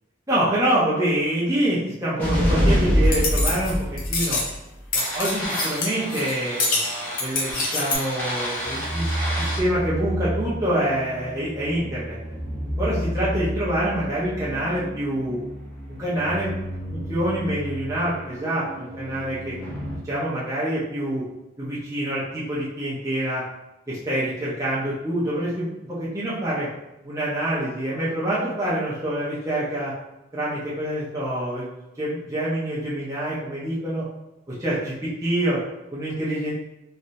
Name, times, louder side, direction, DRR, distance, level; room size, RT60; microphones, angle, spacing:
voice 1, 0.3-4.4 4.9-6.8 7.2-12.2 12.8-15.4 16.0-16.5 17.1-19.5 20.0-21.2 21.6-23.4 23.9-26.7 27.0-29.9 30.3-31.7 32.0-34.0 34.6-34.9 35.2-35.6 35.9-36.5, right 1 dB, 20° right, -9 dB, 0.7 m, -26 dB
sound 1, 2.2-20.0, equal, 10° left, 0.9 m, -28 dB
sound 2, 3.1-3.7 4.0-4.5 4.9-6.3 6.6-8.0, left 3 dB, 50° left, 0.7 m, -26 dB
3.2 x 2.7 x 2.7 m, 0.89 s
head